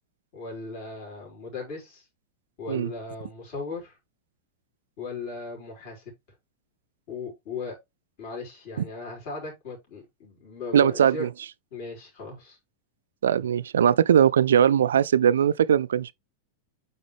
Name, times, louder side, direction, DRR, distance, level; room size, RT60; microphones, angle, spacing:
voice 1, 0.3-2.0 2.6-4.0 5.0-6.0 7.1-7.8 8.2-11.3 11.7-12.6, left 4 dB, 45° left, 4.2 m, -37 dB
voice 2, 10.7-11.3 13.2-16.1, right 9 dB, 65° right, 0.4 m, -20 dB
8.7 x 4.2 x 3.2 m
figure-of-eight pair, 90°, 0 cm